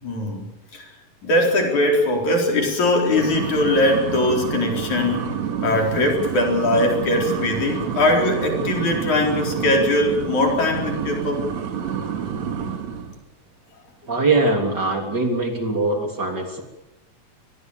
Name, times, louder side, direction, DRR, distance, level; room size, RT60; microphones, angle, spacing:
voice 1, 0.0-0.5 0.7-0.8 1.2-5.3 5.6-11.4, left 1 dB, 75° left, 1 dB, 5.8 m, -21 dB
sound 1, 3.1-13.2, right 7 dB, 70° right, 3.2 m, -28 dB
voice 2, 14.1-16.6, right 3 dB, 35° right, 3 dB, 3.8 m, -22 dB
26.0 x 20.5 x 7.2 m, 0.95 s
omnidirectional pair, 3.3 m